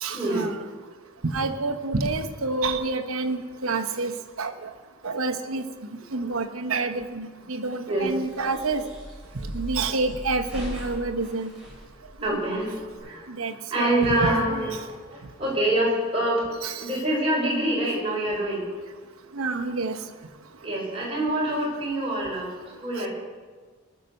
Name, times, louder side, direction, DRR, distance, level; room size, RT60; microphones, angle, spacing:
voice 1, 0.0-0.6 1.2-4.1 4.4-4.5 5.0-5.6 6.1-8.8 9.5-11.5 12.3-12.4 13.4-14.6 16.6-16.8 19.4-20.0 23.0-23.1, right 3 dB, 75° right, 5 dB, 1.1 m, -28 dB
sound 1, 8.0-13.0, equal, 5° right, 4.1 m, -39 dB
voice 2, 12.2-12.7 13.0-13.2 13.7-18.6 20.6-22.5 22.8-23.1, right 1 dB, 25° right, -4 dB, 4.4 m, -25 dB
20.0 x 6.7 x 6.6 m, 1.5 s
head